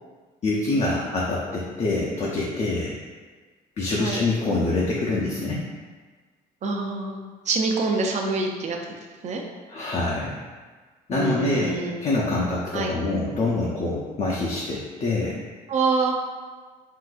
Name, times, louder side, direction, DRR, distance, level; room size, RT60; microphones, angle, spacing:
voice 1, 0.4-2.9 3.8-5.6 9.7-10.4 11.1-15.4, left 2 dB, 40° left, -4 dB, 0.5 m, -25 dB
voice 2, 6.6-7.2 7.5-8.8 9.2-9.4 11.1-12.0 12.7-12.9 15.7-16.2, right 3 dB, 45° right, 2 dB, 0.5 m, -25 dB
3.7 x 2.5 x 2.4 m, 1.4 s
cardioid pair, 110°, 17 cm